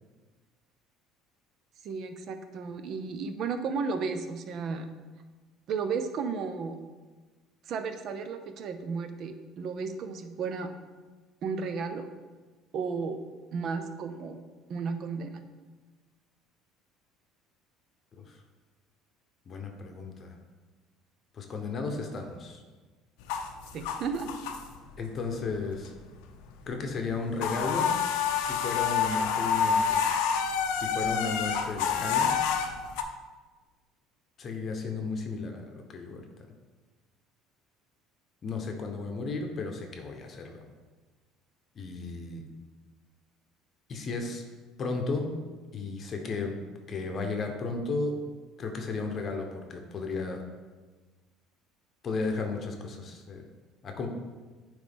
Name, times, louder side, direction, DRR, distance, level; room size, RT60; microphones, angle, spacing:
voice 1, 1.8-4.9 5.7-6.8 7.7-10.7 11.4-12.1 12.7-13.2 13.5-14.4 14.7-15.4 23.7-24.4, right 5 dB, 55° right, 8 dB, 0.6 m, -33 dB
voice 2, 19.5-20.3 21.3-22.6 25.0-25.9 26.7-27.9 28.4-30.0 30.7-32.3 34.4-36.2 38.4-40.7 41.7-42.4 43.9-44.4 44.8-45.3 45.7-48.1 48.6-50.4 52.0-53.4 53.8-54.1, left 3 dB, 40° left, 3 dB, 0.8 m, -34 dB
sound 1, 23.2-25.0 25.4-26.2 26.5-26.7 26.9-33.0, left 7 dB, 80° left, 0.5 m, -28 dB
9.0 x 3.2 x 3.5 m, 1.3 s
supercardioid pair, 100°, 0 cm